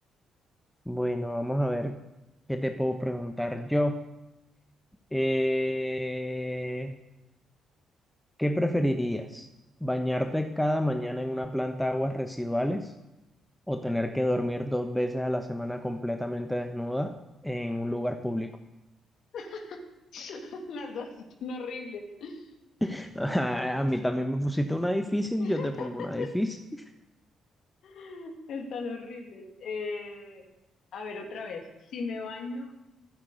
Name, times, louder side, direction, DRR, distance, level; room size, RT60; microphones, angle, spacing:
voice 1, 0.9-2.0 2.5-4.0 5.1-7.0 8.4-9.5 9.8-12.9 13.7-17.1 17.4-18.6 22.8-26.6, equal, 5° left, 6 dB, 1.2 m, -29 dB
voice 2, 19.3-22.5 25.4-26.3 27.8-30.4 30.9-32.7, left 4 dB, 55° left, 3 dB, 2.6 m, -38 dB
13.5 x 8.2 x 9.3 m, 0.94 s
figure-of-eight pair, 40°, 0 cm